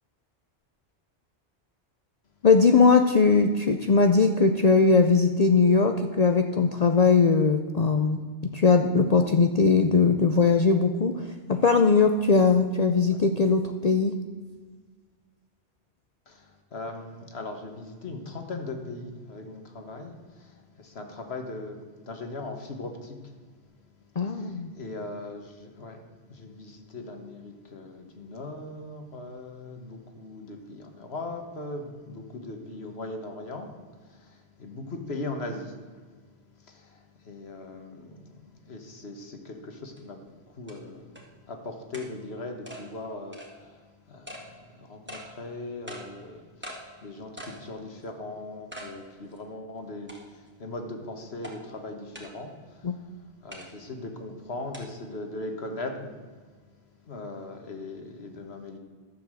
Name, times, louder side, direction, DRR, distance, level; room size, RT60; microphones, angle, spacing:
voice 1, 2.4-14.1 24.2-24.7 52.8-53.0, left 4 dB, 45° left, 6 dB, 0.6 m, -20 dB
voice 2, 16.3-23.3 24.2-26.0 26.3-33.7 34.1-35.8 36.6-40.2 40.5-56.2 57.0-58.8, left 2 dB, 70° left, 4 dB, 1.7 m, -39 dB
sound 1, 40.0-40.1 40.7-40.8 41.2-41.3 41.9-42.1 42.7-42.8 43.3-43.5 44.3-44.4 45.1-45.3 45.9-46.0 46.6-46.8 47.4-47.6 48.0-48.1 48.7-48.9 49.4-49.5 50.1-50.5 51.4-51.5 52.1-52.3 53.5-53.7 54.7-54.8, equal, 10° right, 2.0 m, -41 dB
12.0 x 7.1 x 7.6 m, 1.5 s
omnidirectional pair, 1.1 m